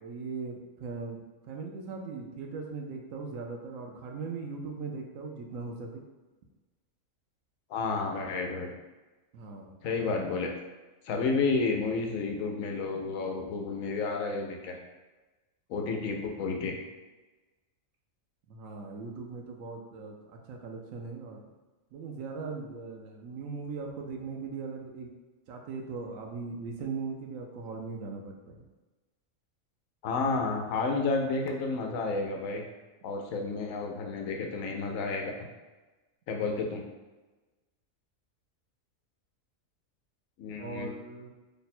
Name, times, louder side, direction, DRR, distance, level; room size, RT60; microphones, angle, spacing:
voice 1, 0.0-6.0 9.3-9.7 18.5-21.4 21.9-25.1 25.5-28.6 36.4-36.6 40.6-41.3, right 4 dB, 80° right, 2 dB, 1.0 m, -39 dB
voice 2, 7.7-8.7 9.8-10.5 11.0-14.7 15.7-16.7 30.0-32.6 33.0-35.3 36.3-36.8 40.4-40.9, left 4 dB, 90° left, 2 dB, 1.0 m, -31 dB
3.3 x 2.1 x 4.1 m, 1.2 s
omnidirectional pair, 1.4 m